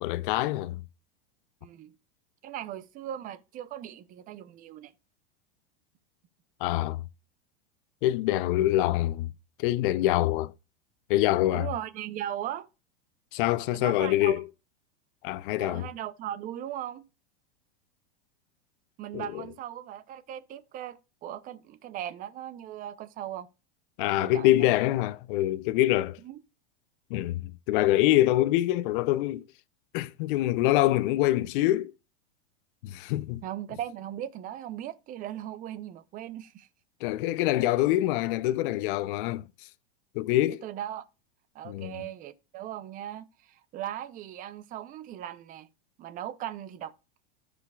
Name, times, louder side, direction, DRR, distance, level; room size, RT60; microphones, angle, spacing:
voice 1, 0.0-0.8 6.6-7.0 8.0-9.3 9.6-10.5 11.1-11.7 13.3-14.4 15.2-15.9 19.1-19.4 24.0-26.2 27.1-29.4 29.9-31.9 32.8-33.4 37.0-39.5 40.2-40.6 41.7-41.9, left 15 dB, 50° left, 0.5 m, -25 dB
voice 2, 1.6-1.9 2.4-4.9 11.5-12.7 13.7-14.4 15.6-17.0 19.0-23.5 24.2-24.6 26.2-26.4 33.4-36.7 40.5-41.1 41.5-45.7 46.0-46.9, right 11 dB, 25° right, 0.5 m, -38 dB
15.0 x 5.1 x 2.3 m
supercardioid pair, 145°, 33 cm